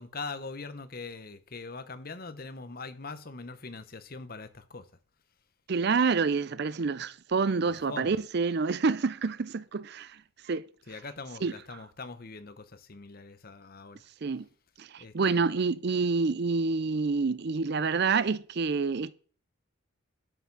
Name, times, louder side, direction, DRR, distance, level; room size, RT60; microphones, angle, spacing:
voice 1, 0.0-4.9 7.6-8.2 10.9-14.0 15.0-15.4, left 3 dB, 45° left, 0.9 m, -42 dB
voice 2, 5.7-10.1 10.5-10.7 11.4-11.5 14.2-14.5 14.8-19.1, right 4 dB, 50° right, 0.5 m, -27 dB
12.5 x 5.9 x 6.0 m
head